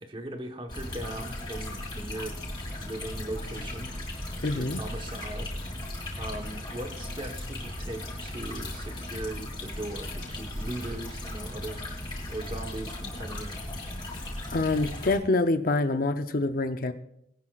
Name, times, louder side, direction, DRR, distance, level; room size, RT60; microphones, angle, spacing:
voice 1, 0.0-2.4 2.8-3.9 4.5-5.5 6.1-12.0 12.3-13.6, right 1 dB, 25° right, 5 dB, 1.2 m, -39 dB
sound 1, 0.7-15.2, left 1 dB, 25° left, 4.9 m, -37 dB
voice 2, 4.4-4.8 14.5-16.9, left 2 dB, 50° left, 9 dB, 0.6 m, -26 dB
22.0 x 9.8 x 2.4 m, 0.76 s
head